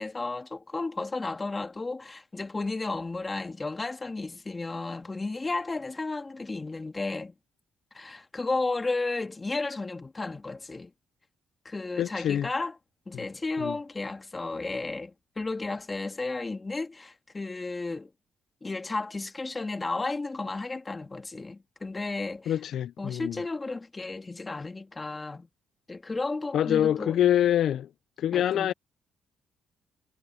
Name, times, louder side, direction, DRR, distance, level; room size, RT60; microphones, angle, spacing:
voice 1, 0.0-7.3 7.9-10.9 11.6-12.8 13.1-18.1 18.6-22.6 23.0-25.5 25.9-27.4 28.3-28.7, left 3 dB, 25° left, 2.7 m, -33 dB
voice 2, 12.0-12.5 13.1-13.3 13.6-13.8 22.5-23.4 26.5-27.9 28.2-28.7, left 11 dB, 70° left, 0.5 m, -25 dB
cardioid pair, 90°, 0 cm